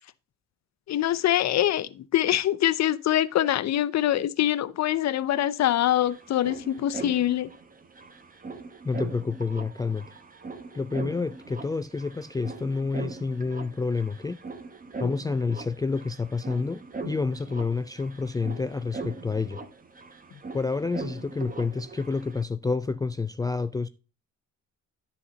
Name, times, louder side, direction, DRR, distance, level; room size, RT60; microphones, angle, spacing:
voice 1, 0.9-7.5, left 12 dB, 55° left, 0.6 m, -24 dB
sound 1, 5.4-5.5 5.7-22.4, right 4 dB, 25° right, 1.1 m, -41 dB
voice 2, 8.8-10.1 10.7-14.4 15.0-19.6 20.5-23.9, left 4 dB, 10° left, 0.3 m, -29 dB
9.8 x 4.2 x 5.0 m
cardioid pair, 85°, 32 cm